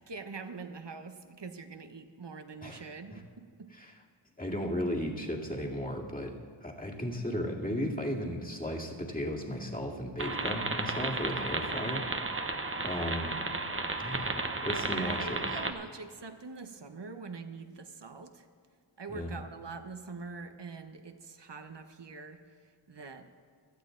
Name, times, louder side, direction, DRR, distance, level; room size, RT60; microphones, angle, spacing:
voice 1, 0.0-3.7 14.8-18.5 19.0-23.3, right 4 dB, 60° right, 7 dB, 1.2 m, -44 dB
voice 2, 4.4-6.3 6.6-12.1 12.8-13.4 14.0-15.5 19.1-19.4, equal, 15° left, -1 dB, 2.2 m, -35 dB
sound 1, 10.2-15.7, right 3 dB, 25° right, 1.0 m, -33 dB
17.5 x 12.5 x 3.9 m, 2.2 s
wide cardioid pair, 50°, 49 cm